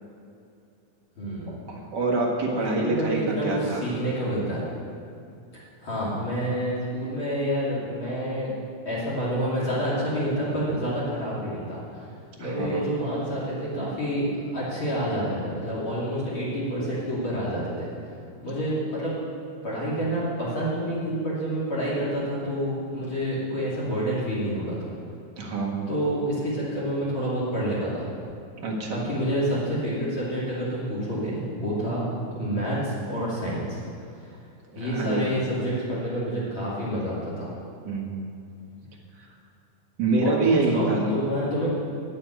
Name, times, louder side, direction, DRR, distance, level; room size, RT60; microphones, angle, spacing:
voice 1, 1.2-1.6 2.4-4.7 5.8-8.6 8.8-12.1 12.4-18.1 18.4-19.2 19.6-24.9 25.9-28.1 28.9-33.8 34.7-37.5 40.2-41.7, equal, 40° left, -8 dB, 3.3 m, -28 dB
voice 2, 1.7-3.8 12.4-12.8 25.4-25.9 28.6-29.1 34.7-35.4 37.8-38.2 40.0-41.1, right 3 dB, 40° right, 0 dB, 1.9 m, -26 dB
9.7 x 8.8 x 9.1 m, 2.5 s
omnidirectional pair, 3.5 m